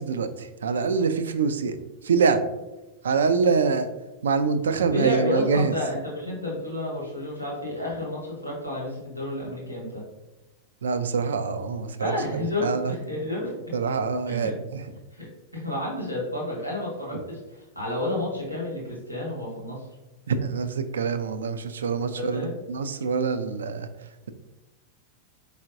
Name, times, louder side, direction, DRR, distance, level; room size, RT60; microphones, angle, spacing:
voice 1, 0.0-1.8 2.0-2.4 3.0-3.9 4.2-5.7 10.8-13.0 13.7-14.8 20.3-22.4 22.7-23.9, right 5 dB, 65° right, 10 dB, 0.3 m, -25 dB
voice 2, 4.9-10.0 12.0-13.5 14.3-14.5 15.1-19.9 21.9-22.5, left 1 dB, 90° right, -4 dB, 1.3 m, -31 dB
4.4 x 3.3 x 2.5 m, 1.0 s
figure-of-eight pair, 90°, 0 cm